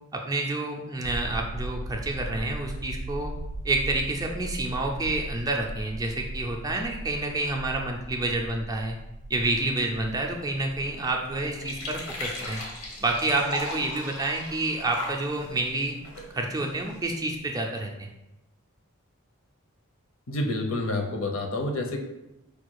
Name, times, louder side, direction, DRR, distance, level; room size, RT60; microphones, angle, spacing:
voice 1, 0.3-3.3 3.6-9.0 9.3-12.6 13.0-16.0 16.3-18.1, right 2 dB, 15° right, 1 dB, 0.4 m, -28 dB
sound 1, 1.0-17.1 17.4-17.5, right 1 dB, 85° right, 0.4 m, -39 dB
sound 2, 10.0-17.2, left 1 dB, 90° left, 1.2 m, -40 dB
voice 2, 20.3-22.0, left 2 dB, 65° left, 3 dB, 0.7 m, -28 dB
4.9 x 2.3 x 4.6 m, 0.92 s
head